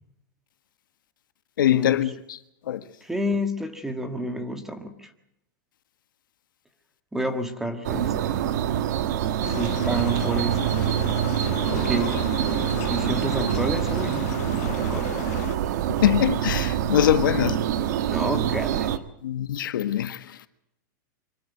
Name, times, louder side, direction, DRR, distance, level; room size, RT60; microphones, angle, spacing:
voice 1, 1.6-2.4 2.7-2.8 16.0-17.6 19.2-20.5, left 11 dB, 85° left, 1.5 m, -23 dB
voice 2, 3.0-5.1 7.1-8.4 9.5-10.8 11.7-12.2 12.9-14.3 14.6-15.3 18.1-19.0, right 1 dB, 5° right, 1.5 m, -30 dB
sound 1, 7.8-19.0, right 10 dB, 55° right, 1.4 m, -25 dB
sound 2, 9.4-15.6, left 16 dB, 50° left, 0.8 m, -35 dB
25.0 x 12.5 x 9.4 m
supercardioid pair, 165°, 11 cm